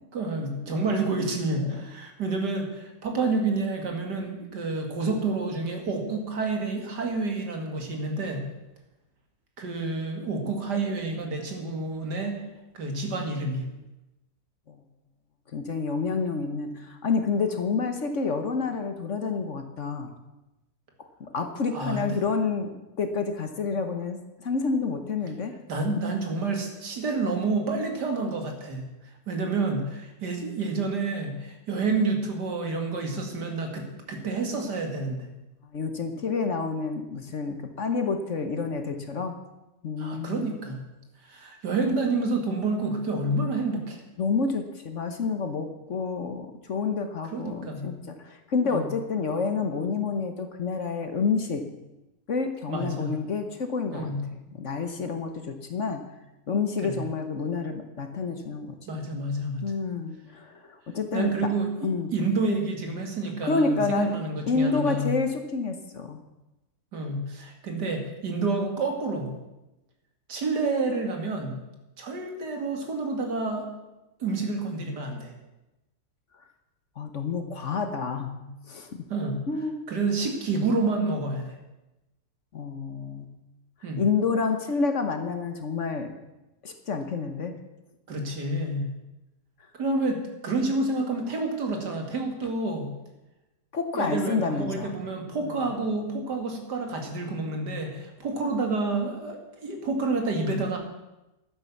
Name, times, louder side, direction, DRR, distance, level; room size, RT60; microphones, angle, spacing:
voice 1, 0.1-8.4 9.6-12.4 12.7-13.7 21.7-22.2 25.7-28.8 29.3-35.3 40.0-40.8 41.2-44.0 47.3-47.9 48.6-48.9 52.7-53.2 53.9-54.2 56.8-57.1 58.9-59.6 61.1-65.1 66.9-69.3 70.3-71.6 72.0-73.7 74.2-75.3 79.1-79.4 79.9-81.6 83.8-84.0 88.1-88.9 89.7-92.9 93.9-100.8, right 3 dB, 70° right, 3 dB, 2.7 m, -29 dB
voice 2, 15.5-20.1 21.2-22.7 23.0-25.5 35.7-39.3 39.8-40.6 44.2-51.6 52.3-56.0 56.5-59.0 59.6-61.3 61.8-62.1 63.4-64.1 64.5-66.2 77.0-78.3 78.7-79.0 79.5-79.8 82.5-83.3 84.0-86.1 86.6-87.5 93.7-94.9, left 4 dB, 50° left, 7 dB, 1.3 m, -29 dB
12.0 x 9.4 x 7.1 m, 0.98 s
omnidirectional pair, 1.8 m